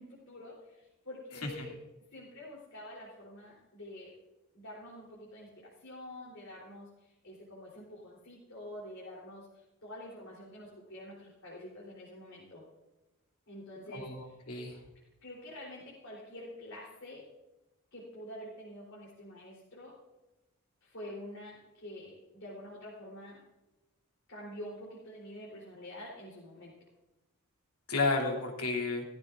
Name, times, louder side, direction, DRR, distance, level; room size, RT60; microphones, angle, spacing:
voice 1, 0.0-1.8 2.1-4.1 4.5-12.6 13.5-14.4 15.2-17.3 17.9-20.0 20.8-23.4 24.3-26.7, left 1 dB, 60° left, -5 dB, 3.6 m, -47 dB
voice 2, 13.9-14.8 27.9-29.0, left 3 dB, 75° left, 0 dB, 2.8 m, -32 dB
16.5 x 15.0 x 2.6 m, 1.0 s
head